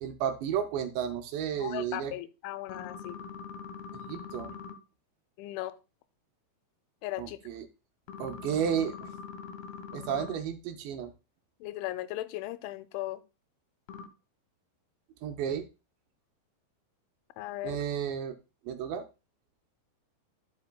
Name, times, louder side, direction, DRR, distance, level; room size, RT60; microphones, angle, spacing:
voice 1, 0.0-2.1 3.9-4.5 7.2-7.7 8.2-9.1 9.9-11.1 15.2-15.6 17.6-18.3 18.7-19.1, right 8 dB, 80° right, 5 dB, 2.8 m, -32 dB
voice 2, 1.5-3.2 5.4-5.8 7.0-7.4 11.6-13.2 17.4-17.8, left 15 dB, 90° left, 13 dB, 3.0 m, -37 dB
sound 1, 2.7-4.7 8.1-10.3 13.9-14.1, left 6 dB, 70° left, 2.5 m, -43 dB
13.0 x 5.2 x 2.2 m, 0.28 s
omnidirectional pair, 5.3 m